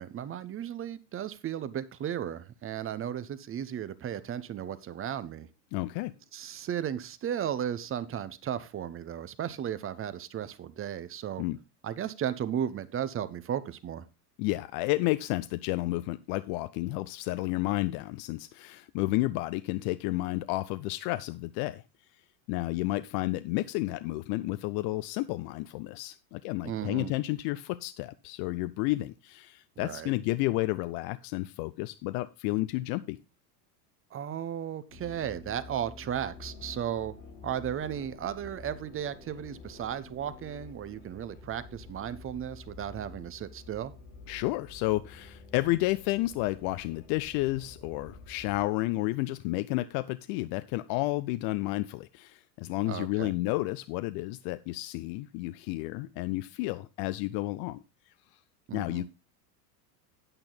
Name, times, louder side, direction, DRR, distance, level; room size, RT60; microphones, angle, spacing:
voice 1, 0.0-5.5 6.3-11.4 11.8-14.0 26.6-27.1 29.8-30.1 34.1-37.1 37.4-43.9 52.9-53.3 58.7-59.1, right 9 dB, 25° right, 15 dB, 0.8 m, -35 dB
voice 2, 5.7-6.1 11.4-11.6 14.4-21.8 22.5-33.2 44.3-57.8 58.7-59.1, left 19 dB, 50° left, 14 dB, 0.5 m, -31 dB
sound 1, 34.9-48.6, left 3 dB, 90° left, 3.3 m, -49 dB
8.9 x 8.6 x 3.9 m, 0.28 s
hypercardioid pair, 105°, 48 cm